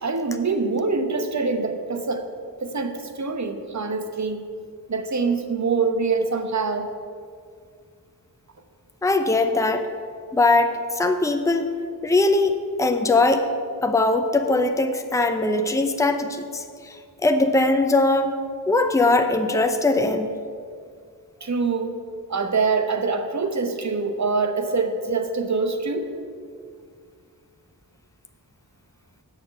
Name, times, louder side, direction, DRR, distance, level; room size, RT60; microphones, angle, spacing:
voice 1, 0.0-2.2 2.6-4.5 4.9-6.9 21.4-22.0 22.3-26.1, right 4 dB, 45° right, 6 dB, 1.0 m, -24 dB
voice 2, 9.0-9.9 10.3-11.7 12.0-13.4 13.8-16.6 17.2-18.3 18.7-20.4, left 2 dB, 10° left, 6 dB, 0.7 m, -20 dB
7.4 x 6.4 x 7.6 m, 2.2 s
cardioid pair, 50°, 39 cm